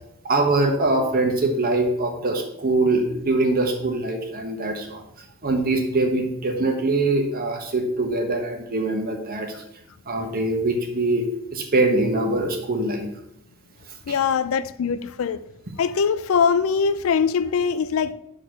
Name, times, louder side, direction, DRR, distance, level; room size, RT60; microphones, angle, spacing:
voice 1, 0.2-5.0 5.4-9.5 10.1-13.1, right 2 dB, 45° right, 1.2 m, -23 dB
voice 2, 14.1-15.4 15.8-18.1, left 6 dB, 70° left, 0.4 m, -22 dB
6.5 x 3.9 x 6.3 m
head